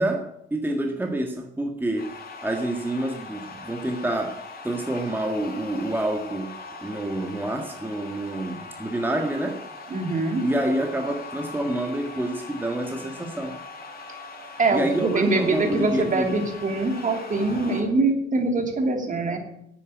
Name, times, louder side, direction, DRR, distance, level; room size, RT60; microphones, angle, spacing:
voice 1, 0.0-2.1 2.4-6.5 6.8-9.6 10.4-13.6 14.7-16.4, right 1 dB, 10° right, 3 dB, 1.7 m, -28 dB
sound 1, 2.0-17.8, left 3 dB, 50° left, 4.4 m, -41 dB
voice 2, 9.9-10.4 14.6-19.4, right 3 dB, 40° right, 4 dB, 2.8 m, -23 dB
9.9 x 9.2 x 9.4 m, 0.79 s
cardioid pair, 90°, 20 cm